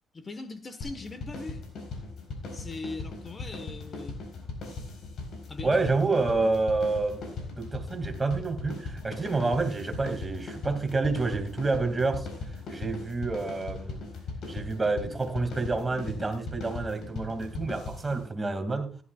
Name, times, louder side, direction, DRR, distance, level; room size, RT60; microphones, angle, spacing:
voice 1, 0.1-1.6 2.5-4.2 5.5-5.8, left 3 dB, 30° left, 1.3 m, -40 dB
sound 1, 0.8-18.3, left 3 dB, 65° left, 4.3 m, -39 dB
voice 2, 5.6-12.3 12.7-14.0 14.5-19.0, right 3 dB, 20° right, 2.4 m, -28 dB
15.5 x 11.5 x 2.4 m
cardioid pair, 90°, 0 cm